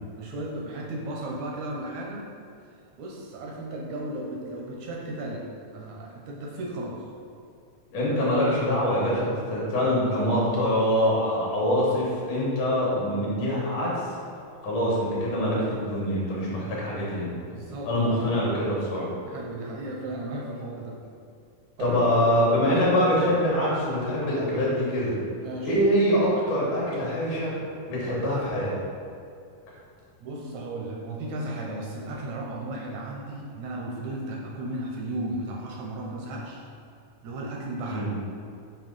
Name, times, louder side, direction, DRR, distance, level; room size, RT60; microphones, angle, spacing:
voice 1, 0.2-2.3 3.0-7.1 17.5-18.3 19.2-21.0 21.8-22.2 25.4-25.8 30.2-36.6 37.2-38.1, right 1 dB, 75° right, -2 dB, 1.7 m, -35 dB
voice 2, 7.9-14.1 14.6-17.3 17.8-19.1 21.8-25.2 25.6-27.5 27.9-28.7 37.9-38.1, equal, 70° left, -6 dB, 2.7 m, -24 dB
7.0 x 2.9 x 5.3 m, 2.4 s
omnidirectional pair, 3.9 m